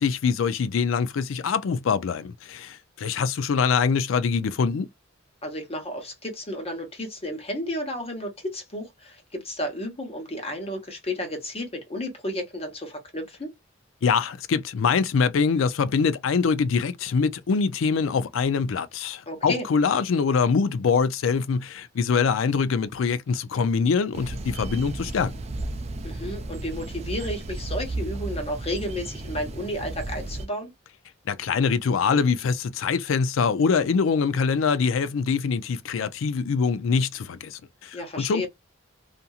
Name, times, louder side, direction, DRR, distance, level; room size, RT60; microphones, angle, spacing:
voice 1, 0.0-4.9 14.0-25.3 31.3-38.5, left 5 dB, 80° left, 0.4 m, -24 dB
voice 2, 5.4-13.5 19.3-19.6 26.0-30.7 37.9-38.5, left 1 dB, 30° left, 1.0 m, -32 dB
sound 1, 24.1-30.5, right 2 dB, 35° right, 0.5 m, -34 dB
2.8 x 2.5 x 2.3 m
head